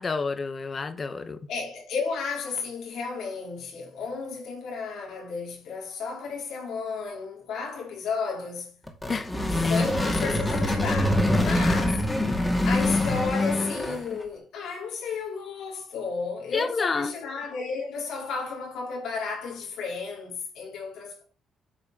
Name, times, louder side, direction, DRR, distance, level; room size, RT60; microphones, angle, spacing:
voice 1, 0.0-1.4 9.1-9.3 9.6-9.8 16.5-17.1, left 4 dB, 35° left, 1.2 m, -29 dB
voice 2, 1.5-8.8 9.7-12.1 12.6-21.2, left 5 dB, 80° left, 4.1 m, -33 dB
sound 1, 8.9-14.2, left 1 dB, 15° left, 2.3 m, -24 dB
8.9 x 4.7 x 6.1 m
cardioid pair, 90°, 0 cm